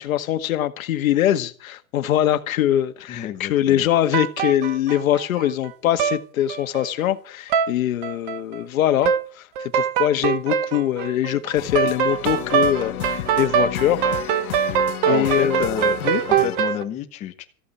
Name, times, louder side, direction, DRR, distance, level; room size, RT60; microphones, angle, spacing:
voice 1, 0.0-14.1 14.6-14.7 15.1-15.6 16.0-16.2, left 12 dB, 70° left, 1.7 m, -23 dB
voice 2, 3.1-3.9 15.1-16.0 16.3-17.4, left 10 dB, 15° left, 1.1 m, -29 dB
sound 1, 4.1-5.7 6.0-6.2 6.5-7.0 7.5-7.7 8.0-8.6 9.0-9.2 9.6-16.8, right 8 dB, 35° right, 1.0 m, -23 dB
sound 2, 11.6-16.6, left 13 dB, 85° left, 1.4 m, -32 dB
14.5 x 8.7 x 8.5 m
supercardioid pair, 175°, 42 cm